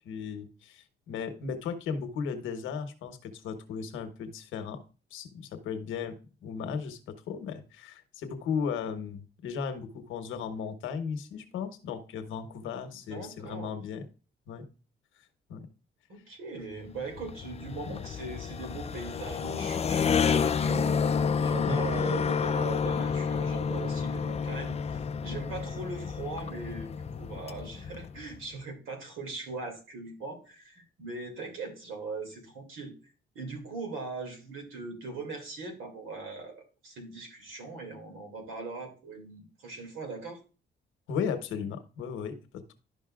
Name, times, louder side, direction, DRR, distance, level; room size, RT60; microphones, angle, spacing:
voice 1, 0.0-4.8 5.1-14.0 14.5-14.6 15.5-15.7 17.9-18.0 21.5-21.9 41.1-42.7, left 6 dB, 90° left, 9 dB, 1.1 m, -36 dB
voice 2, 13.1-13.8 16.1-20.9 21.4-32.9 33.3-40.4, right 3 dB, 85° right, 3 dB, 2.5 m, -40 dB
sound 1, 16.9-28.5, left 6 dB, 30° left, 0.4 m, -30 dB
11.5 x 5.3 x 2.4 m, 0.35 s
cardioid pair, 90°, 20 cm